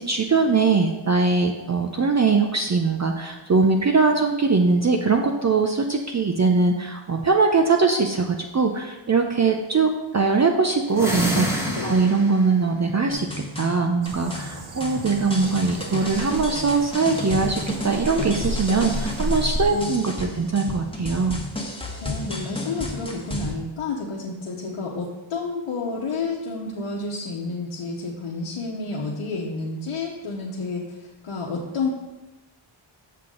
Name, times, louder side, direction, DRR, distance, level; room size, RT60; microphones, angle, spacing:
voice 1, 0.0-13.3 13.6-21.4, right 4 dB, 35° right, 3 dB, 0.6 m, -21 dB
sound 1, 10.9-12.5, equal, 5° right, 1.6 m, -27 dB
sound 2, 13.1-23.5, left 1 dB, 10° left, 1.3 m, -32 dB
sound 3, 14.0-19.9, right 1 dB, 70° right, 1.1 m, -33 dB
voice 2, 22.0-31.9, left 3 dB, 75° left, -4 dB, 1.1 m, -30 dB
7.5 x 5.8 x 3.8 m, 1.1 s
cardioid pair, 60°, 50 cm